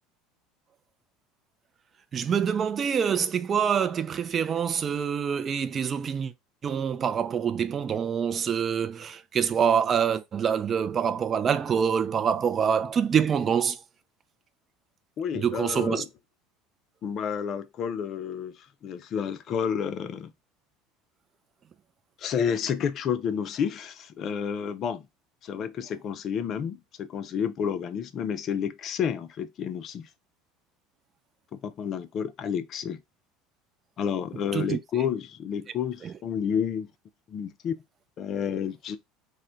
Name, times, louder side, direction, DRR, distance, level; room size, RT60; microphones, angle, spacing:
voice 1, 2.1-6.3 6.6-13.8 15.3-16.0 34.5-34.8 36.0-36.1, right 7 dB, 35° right, 0.3 m, -26 dB
voice 2, 15.2-16.1 17.0-20.3 22.2-25.1 25.4-30.1 31.5-33.0 34.0-36.9 37.3-37.7 38.2-39.0, left 7 dB, 45° left, 0.4 m, -30 dB
2.1 x 2.1 x 3.7 m
figure-of-eight pair, 70°, 0 cm